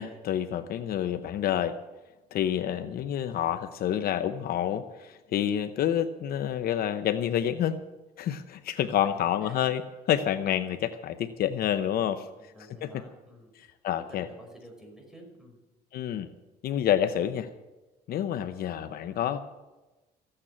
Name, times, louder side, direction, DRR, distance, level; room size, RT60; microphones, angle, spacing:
voice 1, 0.0-1.8 2.3-7.8 8.2-12.3 12.8-13.0 13.6-14.3 15.9-16.3 16.6-17.5 18.1-19.4, left 10 dB, 65° left, 10 dB, 0.8 m, -28 dB
voice 2, 8.8-9.2 9.4-9.6 12.4-15.6, equal, 5° right, 1 dB, 5.2 m, -51 dB
15.0 x 8.9 x 8.8 m, 1.1 s
cardioid pair, 110°, 17 cm